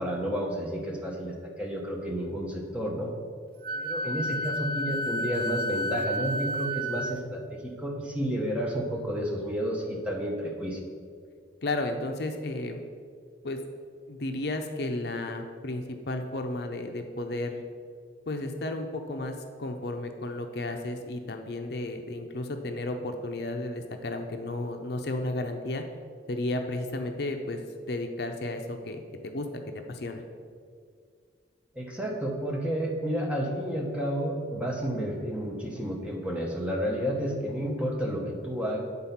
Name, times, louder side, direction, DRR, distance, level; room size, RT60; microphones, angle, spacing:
voice 1, 0.0-3.1 3.7-10.8 31.7-38.8, equal, 5° right, -1 dB, 0.9 m, -31 dB
Wind instrument woodwind instrument, 3.6-7.2, equal, 50° right, 0.4 m, -31 dB
voice 2, 11.6-12.8 13.4-13.6 14.1-17.6 18.3-25.8 26.3-27.6 27.9-29.5 29.9-30.2, left 2 dB, 55° left, 5 dB, 0.6 m, -33 dB
8.8 x 4.0 x 5.7 m, 2.1 s
head